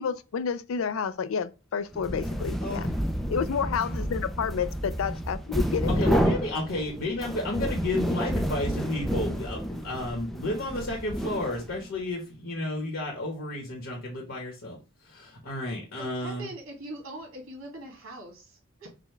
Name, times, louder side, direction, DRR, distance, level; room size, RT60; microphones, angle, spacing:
voice 1, 0.0-2.9 3.3-6.1, left 6 dB, 85° left, 0.4 m, -30 dB
sound 1, 1.9-11.9, equal, ahead, 0.4 m, -30 dB
voice 2, 6.0-14.8 15.1-16.5, left 1 dB, 70° left, 1.3 m, -32 dB
voice 3, 16.0-18.9, right 1 dB, 85° right, 2.3 m, -42 dB
5.1 x 2.2 x 3.2 m
head